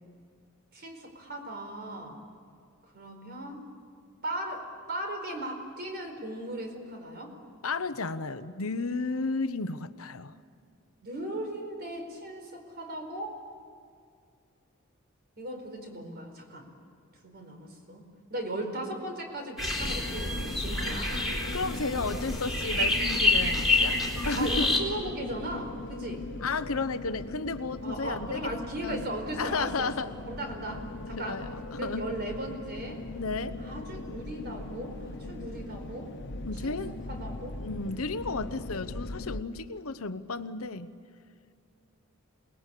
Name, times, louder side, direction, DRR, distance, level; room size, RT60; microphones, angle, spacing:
voice 1, 0.7-2.2 2.9-3.6 4.2-7.3 11.0-13.4 15.4-16.6 17.2-18.0 18.3-21.1 24.4-26.3 27.8-30.8 31.1-31.4 31.8-33.0 33.6-36.1 36.6-36.8 37.1-37.6, right 1 dB, 50° right, 4 dB, 4.7 m, -37 dB
voice 2, 7.6-10.3 21.5-24.8 26.4-28.5 28.8-29.0 29.3-30.1 30.7-32.1 33.2-33.6 36.4-36.9 37.6-40.9, left 3 dB, 85° left, 11 dB, 1.0 m, -33 dB
sound 1, 19.6-24.8, left 2 dB, ahead, 3.9 m, -28 dB
sound 2, 19.8-39.4, left 2 dB, 60° left, 1.1 m, -40 dB
27.5 x 20.5 x 8.5 m, 2.3 s
head